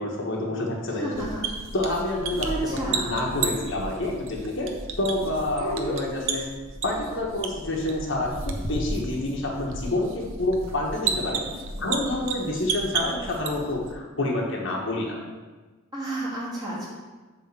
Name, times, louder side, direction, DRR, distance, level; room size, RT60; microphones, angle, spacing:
voice 1, 0.0-1.2 1.7-4.7 5.0-6.4 6.8-11.4 11.8-15.2, left 2 dB, 60° left, -1 dB, 1.4 m, -28 dB
voice 2, 1.0-1.4 2.4-3.2 5.6-6.0 15.9-16.9, right 1 dB, 20° right, -7 dB, 2.5 m, -31 dB
sound 1, 1.1-13.9, right 4 dB, 65° right, 0.8 m, -33 dB
8.1 x 3.8 x 6.8 m, 1.3 s
head